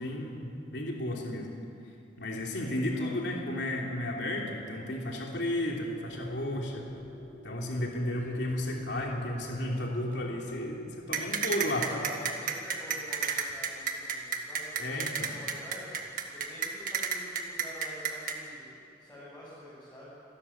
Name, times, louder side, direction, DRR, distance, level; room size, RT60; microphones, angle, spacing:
voice 1, 0.0-1.5 2.2-6.9 7.4-12.0 14.8-15.3, left 1 dB, 75° left, -1 dB, 3.2 m, -33 dB
voice 2, 2.5-3.1 11.9-20.1, equal, 10° left, -12 dB, 8.0 m, -48 dB
sound 1, 4.8-13.1, right 1 dB, 35° left, 7.3 m, -52 dB
sound 2, 11.1-18.4, right 7 dB, 50° right, 2.0 m, -31 dB
28.0 x 13.5 x 9.9 m, 2.6 s
head